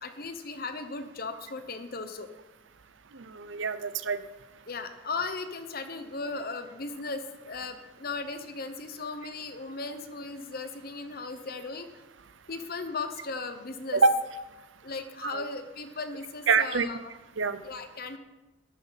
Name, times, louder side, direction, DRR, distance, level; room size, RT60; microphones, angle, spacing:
voice 1, 0.0-2.3 4.6-11.9 12.5-14.0 14.8-17.1 17.6-18.2, left 3 dB, 50° left, 9 dB, 1.0 m, -37 dB
voice 2, 3.1-4.2 13.9-14.1 15.2-15.4 16.5-16.9 17.4-17.6, right 4 dB, 75° right, 12 dB, 0.7 m, -25 dB
13.0 x 12.5 x 4.1 m, 1.1 s
head